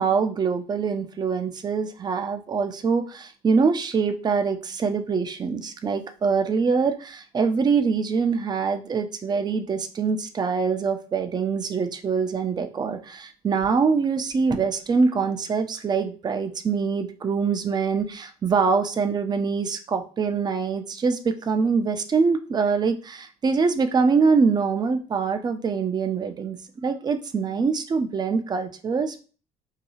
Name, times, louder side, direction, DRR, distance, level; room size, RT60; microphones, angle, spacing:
voice 1, 0.0-26.6 26.8-29.2, right 5 dB, 25° right, 7 dB, 0.4 m, -24 dB
2.8 x 2.2 x 2.8 m, 0.38 s
hypercardioid pair, 55°, 18 cm